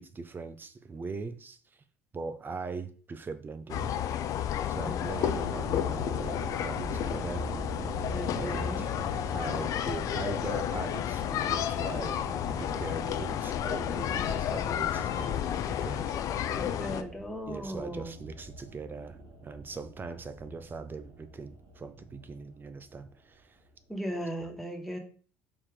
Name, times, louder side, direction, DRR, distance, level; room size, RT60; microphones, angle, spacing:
voice 1, 0.0-1.8 2.1-3.9 4.7-7.5 8.3-8.9 9.3-12.2 12.6-16.6 17.5-23.6 24.4-24.6, right 4 dB, 30° right, 1.0 m, -41 dB
sound 1, 3.7-17.0, left 10 dB, 50° left, 0.6 m, -31 dB
sound 2, 5.2-23.4 23.6-23.7, right 1 dB, 55° right, 2.1 m, -43 dB
voice 2, 8.1-8.9 16.6-18.1 23.9-25.0, equal, ahead, 2.1 m, -37 dB
5.4 x 4.9 x 5.1 m
figure-of-eight pair, 60°, 7 cm